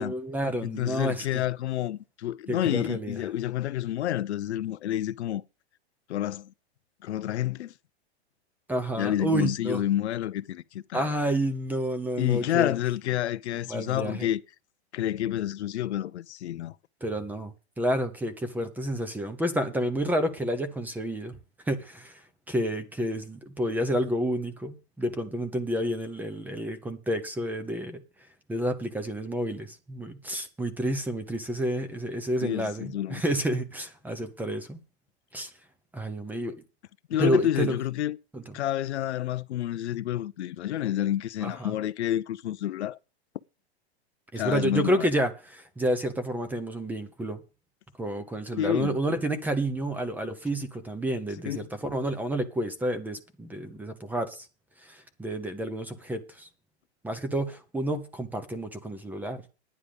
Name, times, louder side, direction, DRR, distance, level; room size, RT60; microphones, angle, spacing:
voice 1, 0.0-1.4 2.5-3.2 8.7-9.8 10.9-12.7 13.7-14.3 17.0-21.3 21.7-28.0 28.5-34.8 35.3-35.5 35.9-36.5 37.2-37.8 38.3-38.5 41.4-41.8 44.3-47.4 48.0-54.5 54.8-56.5 57.0-59.4, right 1 dB, 5° right, 0.9 m, -30 dB
voice 2, 0.6-5.4 6.1-6.5 7.0-7.7 9.0-11.1 12.2-14.4 14.9-16.7 32.4-33.2 37.1-38.2 38.5-43.0 44.4-45.1 48.6-49.0 51.5-51.7, left 12 dB, 75° left, 0.7 m, -29 dB
10.0 x 9.7 x 5.2 m
hypercardioid pair, 145°, 33 cm